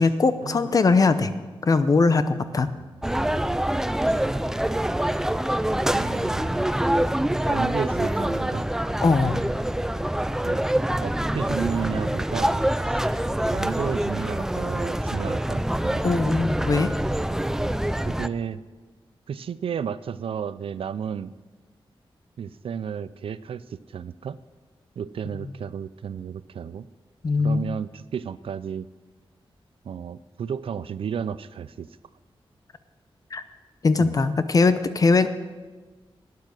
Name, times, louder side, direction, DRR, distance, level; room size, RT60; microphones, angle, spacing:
voice 1, 0.0-1.3 1.6-2.7 9.0-9.4 16.0-16.9 25.4-25.5 27.2-27.7 33.3-33.4 33.8-35.3, left 4 dB, 40° left, 12 dB, 0.6 m, -20 dB
voice 2, 2.5-3.2 5.9-6.7 7.5-8.6 10.4-10.6 11.0-12.6 12.9-13.0 13.5-16.6 18.0-18.6 19.3-21.3 22.4-24.4 25.0-26.9 27.4-28.9 29.8-31.9 34.0-34.2, right 7 dB, 75° right, 16 dB, 0.4 m, -33 dB
sound 1, 3.0-18.3, right 1 dB, 5° right, 0.3 m, -25 dB
12.0 x 9.4 x 6.5 m, 1.3 s
wide cardioid pair, 170°, 9 cm